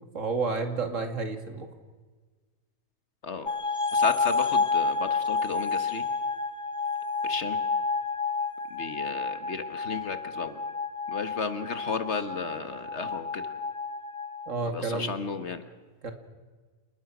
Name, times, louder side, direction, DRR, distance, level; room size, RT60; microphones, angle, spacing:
voice 1, 0.1-1.7 14.5-15.1 16.0-16.1, right 4 dB, 65° right, 6 dB, 2.6 m, -30 dB
sound 1, 3.5-14.5, left 4 dB, 25° left, 1.2 m, -30 dB
voice 2, 3.9-6.0 7.2-7.6 8.7-10.6 11.1-13.5 14.7-15.6, left 4 dB, 55° left, 10 dB, 1.6 m, -33 dB
28.5 x 19.5 x 6.2 m, 1.3 s
omnidirectional pair, 1.5 m